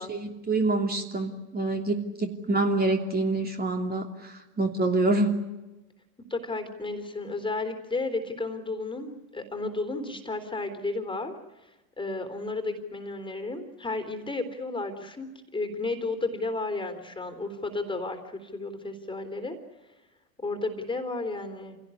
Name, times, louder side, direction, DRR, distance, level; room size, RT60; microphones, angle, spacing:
voice 1, 0.1-5.4, right 2 dB, 20° right, 3 dB, 3.0 m, -26 dB
voice 2, 6.3-11.3 11.6-11.7 12.0-15.3 15.5-19.6 20.4-21.8, left 3 dB, 10° left, 8 dB, 3.5 m, -33 dB
27.5 x 17.5 x 9.9 m, 1.1 s
hypercardioid pair, 95°, 48 cm